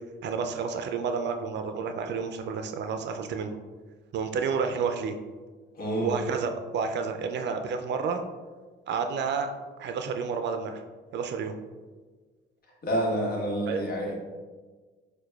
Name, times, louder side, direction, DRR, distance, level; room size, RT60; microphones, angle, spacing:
voice 1, 0.2-3.6 4.1-5.2 6.0-8.2 8.9-9.5 9.8-10.8 11.1-11.6 13.7-13.8, right 5 dB, 60° right, 6 dB, 0.4 m, -30 dB
voice 2, 5.8-6.1 12.8-14.2, equal, 50° left, -1 dB, 1.1 m, -28 dB
6.4 x 2.2 x 2.3 m, 1.4 s
cardioid pair, 90°, 20 cm